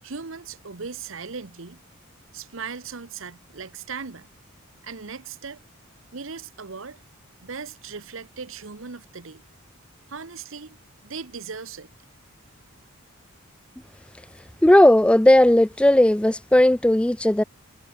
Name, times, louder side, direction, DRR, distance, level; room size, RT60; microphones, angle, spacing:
voice 1, 0.0-1.8 2.3-4.3 4.8-5.6 6.1-7.0 7.4-9.4 10.1-10.8 11.0-11.9, right 5 dB, 65° right, 1.0 m, -38 dB
voice 2, 14.6-17.4, left 1 dB, 5° left, 0.3 m, -16 dB
head